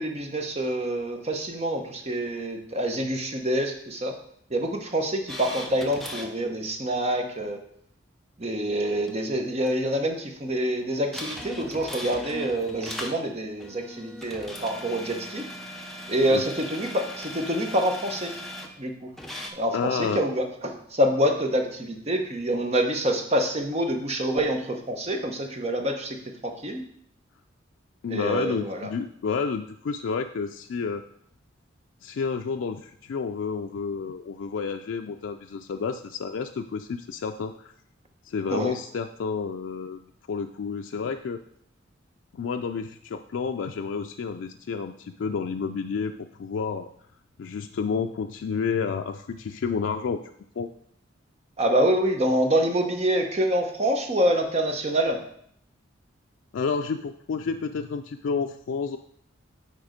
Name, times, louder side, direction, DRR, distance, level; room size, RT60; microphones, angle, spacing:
voice 1, 0.0-4.1 4.5-7.6 8.4-15.4 16.1-18.3 18.8-18.9 19.6-26.2 26.4-26.8 28.1-28.9 38.5-38.7 51.6-55.2, right 1 dB, 35° right, 3 dB, 0.9 m, -26 dB
sound 1, 5.3-6.3 9.1-9.2 9.6-9.7 11.1-13.2 13.6-18.7 19.2-19.5, left 1 dB, ahead, 0.7 m, -38 dB
voice 2, 19.7-20.2 28.0-31.0 32.0-37.7 38.2-41.4 42.3-46.1 46.4-46.9 47.4-50.2 50.6-50.7 56.5-59.0, left 5 dB, 75° left, 5 dB, 0.4 m, -30 dB
9.1 x 3.5 x 5.1 m, 0.68 s
head